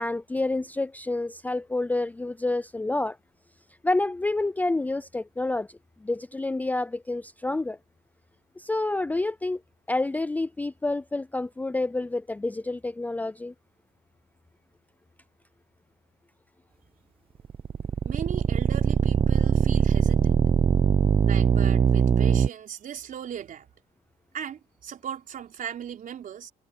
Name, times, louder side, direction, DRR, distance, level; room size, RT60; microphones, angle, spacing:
voice 1, 0.0-3.2 3.8-7.8 8.6-9.6 9.9-13.5, left 2 dB, 10° left, 0.4 m, -28 dB
sound 1, 17.4-22.5, right 7 dB, 35° right, 0.7 m, -21 dB
voice 2, 18.0-20.5 21.2-23.7 24.3-26.5, right 9 dB, 50° right, 3.9 m, -38 dB
cardioid pair, 110°, 17 cm